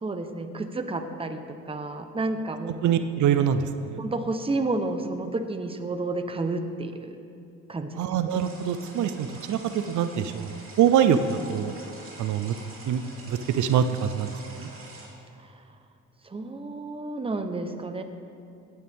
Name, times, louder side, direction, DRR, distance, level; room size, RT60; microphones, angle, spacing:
voice 1, 0.0-2.7 4.0-7.1 7.7-8.1 16.2-18.0, right 2 dB, 20° right, 8 dB, 0.9 m, -31 dB
voice 2, 2.8-4.0 8.0-9.6 9.9-11.7 12.2-12.6 12.9-14.7, right 8 dB, 75° right, 10 dB, 0.6 m, -24 dB
sound 1, 8.3-15.1, right 2 dB, 45° right, 2.7 m, -46 dB
16.5 x 9.6 x 3.6 m, 2.7 s
cardioid pair, 90°, 30 cm